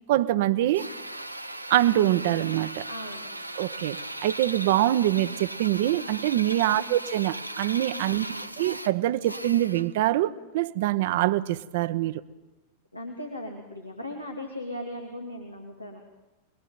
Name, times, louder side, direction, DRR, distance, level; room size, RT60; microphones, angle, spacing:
voice 1, 0.1-0.9 1.7-2.9 3.6-8.2 8.6-12.2, right 14 dB, 55° right, 1.1 m, -24 dB
Drill, 0.7-10.0, right 1 dB, 90° right, 1.1 m, -38 dB
voice 2, 2.9-3.3 6.6-6.8 8.1-8.6 12.9-16.1, left 1 dB, 85° left, 3.0 m, -38 dB
28.0 x 22.0 x 9.3 m
figure-of-eight pair, 90°, 0 cm